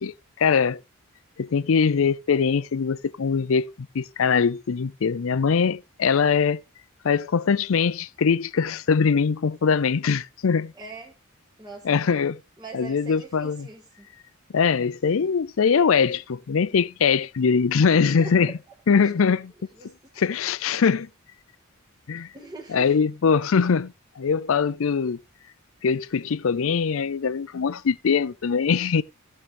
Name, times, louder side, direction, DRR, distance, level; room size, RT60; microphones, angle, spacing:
voice 1, 0.0-0.8 1.4-6.6 7.0-10.7 11.8-12.4 12.7-13.7 14.5-18.5 18.9-19.5 20.2-21.1 22.1-22.3 22.7-25.2 25.8-29.0, left 6 dB, 65° left, 0.5 m, -22 dB
voice 2, 10.7-11.1 11.6-11.9 12.6-14.1 17.9-18.6 19.0-19.3 19.7-19.9 22.3-22.9, right 3 dB, 20° right, 1.7 m, -41 dB
16.0 x 6.6 x 3.5 m
head